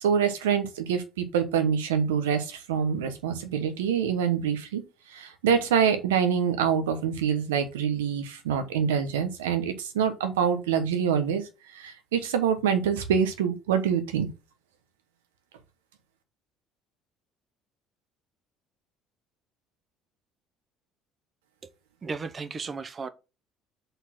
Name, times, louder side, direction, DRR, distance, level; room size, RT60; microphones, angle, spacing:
voice 1, 0.0-4.8 5.1-11.4 11.7-14.3, right 7 dB, 90° right, 1.1 m, -25 dB
voice 2, 22.0-23.1, right 4 dB, 35° right, 1.0 m, -34 dB
5.4 x 4.2 x 6.0 m
hypercardioid pair, 70°, 0 cm